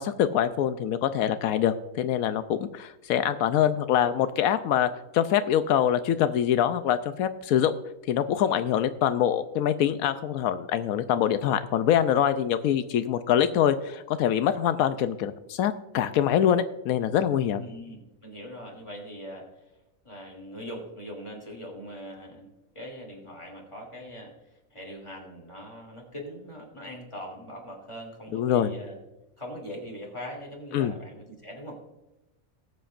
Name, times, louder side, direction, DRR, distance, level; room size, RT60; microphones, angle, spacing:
voice 1, 0.0-7.7 8.1-17.6 28.3-28.7 30.7-30.9, left 10 dB, 90° left, 11 dB, 1.1 m, -24 dB
voice 2, 17.6-19.5 20.0-24.3 24.7-29.0 29.4-31.8, equal, 20° left, 0 dB, 2.8 m, -41 dB
19.0 x 7.9 x 2.5 m, 0.99 s
omnidirectional pair, 1.4 m